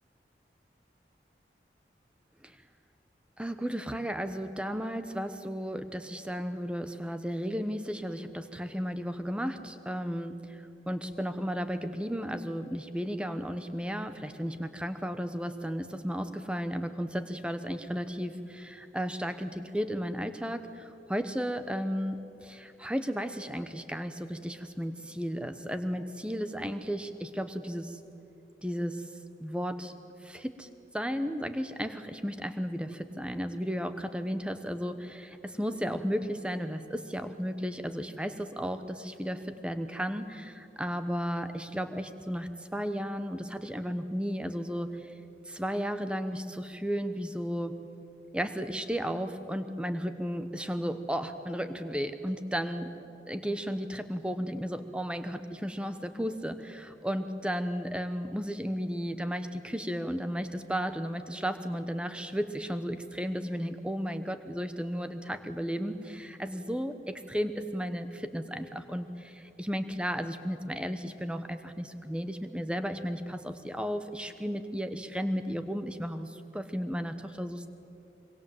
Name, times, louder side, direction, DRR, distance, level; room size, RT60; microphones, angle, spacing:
voice 1, 3.4-28.0 28.6-29.1 29.4-29.9 30.2-30.7 30.9-45.1 45.5-47.8 48.3-52.9 53.3-77.7, equal, 5° right, 9 dB, 1.0 m, -34 dB
25.0 x 23.5 x 8.0 m, 2.9 s
head